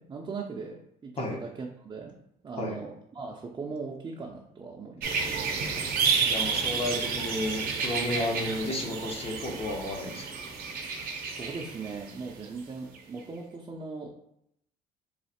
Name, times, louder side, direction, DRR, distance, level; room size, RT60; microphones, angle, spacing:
voice 1, 0.0-2.2 2.4-5.1 10.8-11.0 11.3-14.2, right 4 dB, 25° right, -1 dB, 0.5 m, -39 dB
sound 1, 5.0-12.6 12.9-13.0, right 5 dB, 60° right, 0.7 m, -31 dB
voice 2, 6.2-10.3, left 1 dB, 35° left, 1 dB, 0.8 m, -32 dB
3.2 x 2.4 x 4.2 m, 0.77 s
cardioid pair, 110°, 17 cm